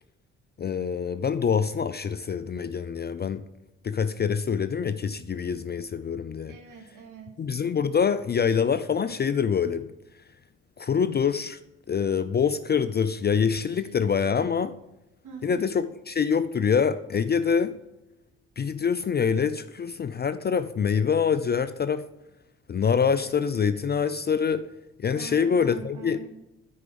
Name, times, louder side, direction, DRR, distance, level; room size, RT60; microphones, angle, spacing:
voice 1, 0.6-3.4 3.8-6.5 7.4-9.9 10.8-11.6 11.9-14.7 15.4-17.8 18.6-22.0 22.7-24.7 25.0-26.2, left 6 dB, 30° left, 0.4 m, -25 dB
voice 2, 6.5-7.4 13.7-13.8 15.2-15.6 25.1-26.3, right 5 dB, 55° right, 2.2 m, -43 dB
9.6 x 4.7 x 5.1 m
hypercardioid pair, 45°, 36 cm